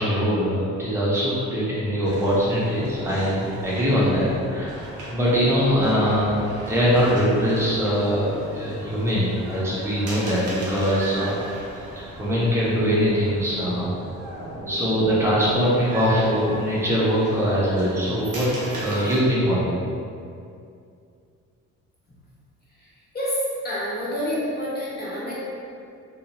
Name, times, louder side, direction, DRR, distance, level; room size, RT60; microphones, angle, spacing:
voice 1, 0.0-4.8 5.1-11.4 12.2-13.9 14.7-19.8, equal, 10° right, -8 dB, 0.8 m, -22 dB
sound 1, 2.0-19.2, right 1 dB, 80° right, 0.7 m, -37 dB
voice 2, 23.6-25.3, equal, 30° left, -8 dB, 0.9 m, -28 dB
2.6 x 2.0 x 2.9 m, 2.4 s
cardioid pair, 90°, 30 cm